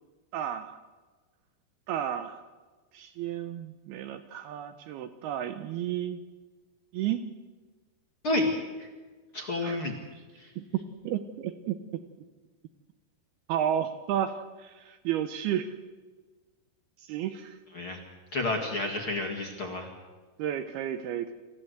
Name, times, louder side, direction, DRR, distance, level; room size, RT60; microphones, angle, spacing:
voice 1, 0.3-0.8 1.9-2.4 2.9-6.2 6.9-7.2 9.6-9.8 10.6-12.0 13.5-14.3 14.6-15.7 17.1-17.6 20.4-21.3, right 10 dB, 75° right, 9 dB, 2.5 m, -32 dB
voice 2, 9.3-10.0 10.4-10.5 17.7-18.0 18.3-19.9, left 2 dB, 40° left, 1 dB, 2.1 m, -30 dB
26.5 x 15.0 x 8.1 m, 1.3 s
omnidirectional pair, 5.1 m